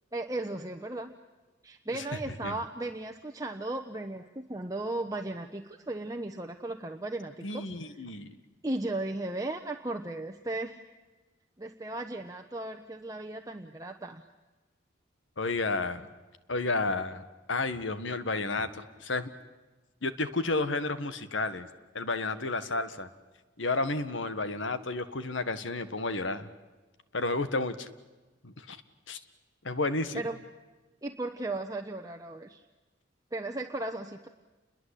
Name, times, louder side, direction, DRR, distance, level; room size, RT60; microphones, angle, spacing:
voice 1, 0.1-1.1 1.6-7.7 8.6-10.8 11.6-14.2 30.1-30.4 31.0-32.6 33.3-34.3, right 2 dB, 20° right, 4 dB, 1.0 m, -36 dB
voice 2, 7.4-8.4 15.4-16.0 16.5-19.3 20.0-21.7 21.9-23.1 23.6-26.5 27.1-27.9 28.4-28.8 29.1-29.2 29.6-30.2, left 3 dB, 75° left, 12 dB, 1.7 m, -31 dB
29.5 x 22.0 x 8.4 m, 1.2 s
head